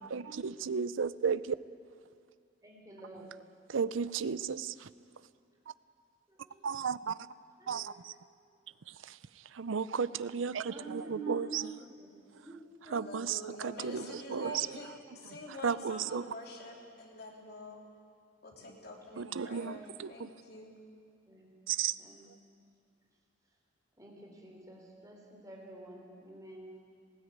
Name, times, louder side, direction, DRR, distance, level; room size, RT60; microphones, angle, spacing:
voice 1, 0.1-1.4 3.7-4.7 6.6-7.1 7.7-7.9 9.6-11.7 12.9-13.4 14.3-14.7 15.6-16.2 19.2-19.8 21.7-21.9, right 6 dB, 85° right, 17 dB, 0.5 m, -33 dB
voice 2, 2.6-3.3 6.5-6.6 7.6-7.9 10.6-12.1 12.3-13.2 18.6-18.8 21.3-21.5 22.0-22.3 24.0-26.7, right 3 dB, 20° right, 0 dB, 3.6 m, -47 dB
voice 3, 12.9-17.8 18.4-20.7, left 2 dB, 55° left, 0 dB, 3.1 m, -47 dB
18.5 x 16.0 x 9.5 m, 2.3 s
head